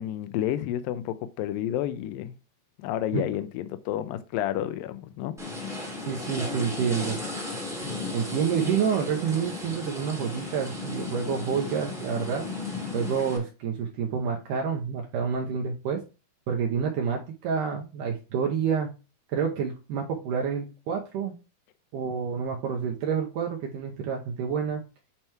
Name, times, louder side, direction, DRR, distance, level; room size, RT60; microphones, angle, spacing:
voice 1, 0.0-2.3 2.8-5.3, left 12 dB, 80° left, 2.1 m, -30 dB
sound 1, 5.4-13.4, left 3 dB, 5° right, 0.5 m, -35 dB
voice 2, 6.1-7.2 8.1-12.4 12.9-16.0 16.5-18.9 19.3-21.3 21.9-24.8, right 7 dB, 70° right, 2.1 m, -28 dB
8.8 x 3.0 x 4.5 m
omnidirectional pair, 4.5 m